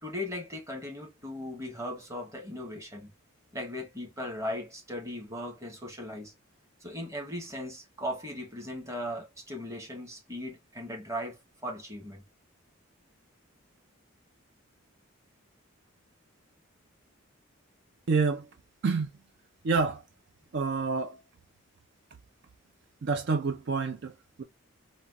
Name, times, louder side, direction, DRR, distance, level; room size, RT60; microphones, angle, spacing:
voice 1, 0.0-3.1 3.5-6.3 6.8-12.2, left 1 dB, 15° right, 1.0 m, -38 dB
voice 2, 18.1-18.5 18.8-19.1 19.6-20.0 20.5-21.2 23.0-24.4, right 4 dB, 55° right, 0.4 m, -28 dB
4.2 x 2.2 x 2.3 m
head